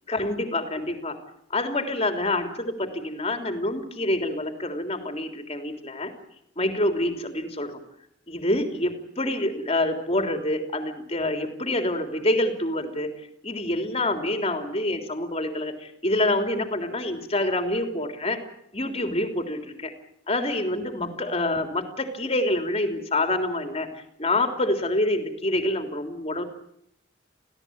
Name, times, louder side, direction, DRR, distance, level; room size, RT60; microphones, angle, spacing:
voice 1, 0.1-1.2 1.5-6.1 6.6-7.8 8.3-13.1 13.4-18.4 18.7-19.9 20.3-23.9 24.2-26.4, left 1 dB, 35° left, 5 dB, 3.5 m, -26 dB
27.5 x 17.0 x 8.9 m, 0.73 s
head